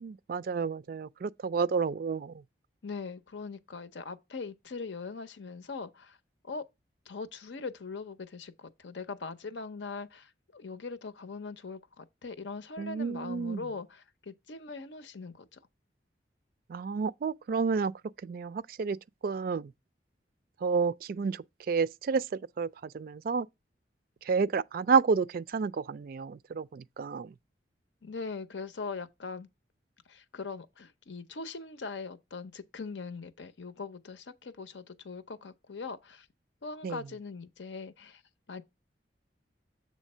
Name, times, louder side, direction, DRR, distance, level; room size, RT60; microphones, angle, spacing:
voice 1, 0.0-2.4 12.8-13.6 16.7-17.9 18.2-19.0 19.2-19.7 20.6-23.5 24.2-27.3 36.8-37.0, right 5 dB, 55° right, 0.3 m, -30 dB
voice 2, 2.8-6.2 6.4-6.6 7.1-15.6 28.0-29.5 30.1-36.3 36.6-38.2 38.5-38.6, left 4 dB, 85° left, 0.7 m, -41 dB
7.4 x 3.2 x 5.4 m
head